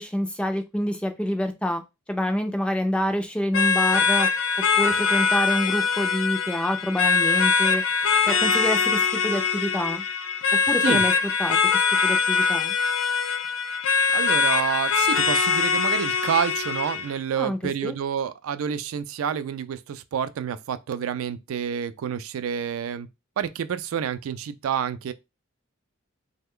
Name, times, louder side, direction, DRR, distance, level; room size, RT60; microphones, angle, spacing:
voice 1, 0.0-1.8 2.1-4.3 4.8-7.8 8.3-10.0 10.7-11.1 11.4-11.6 12.0-12.7 17.4-18.0, left 1 dB, 5° left, 0.3 m, -27 dB
sound 1, 3.5-17.1, left 5 dB, 80° left, 0.4 m, -22 dB
voice 2, 14.1-23.1 23.4-25.1, right 8 dB, 80° right, 0.3 m, -28 dB
3.2 x 2.2 x 3.5 m
head